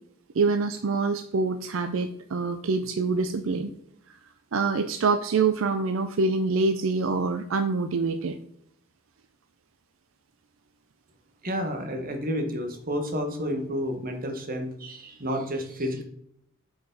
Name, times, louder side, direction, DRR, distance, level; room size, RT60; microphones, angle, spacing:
voice 1, 0.3-3.7 4.5-8.4, right 4 dB, 75° right, 9 dB, 0.5 m, -25 dB
voice 2, 11.4-16.0, equal, 45° right, 4 dB, 1.3 m, -30 dB
8.1 x 4.9 x 3.9 m, 0.72 s
head